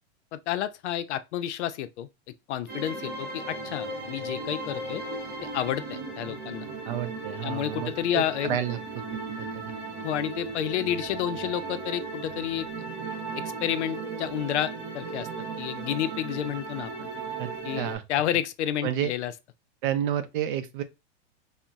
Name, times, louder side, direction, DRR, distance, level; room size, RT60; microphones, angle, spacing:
voice 1, 0.3-2.1 2.5-5.0 5.4-6.7 7.4-8.6 10.0-12.7 13.4-15.3 15.6-17.1 17.6-19.3, left 11 dB, 90° left, 0.5 m, -30 dB
sound 1, 2.7-17.9, right 3 dB, 30° right, 0.9 m, -36 dB
voice 2, 6.9-8.8 9.4-9.7 17.4-18.0 18.8-19.1 19.8-20.8, right 10 dB, 50° right, 0.5 m, -30 dB
3.9 x 2.1 x 2.3 m
supercardioid pair, 160°, 34 cm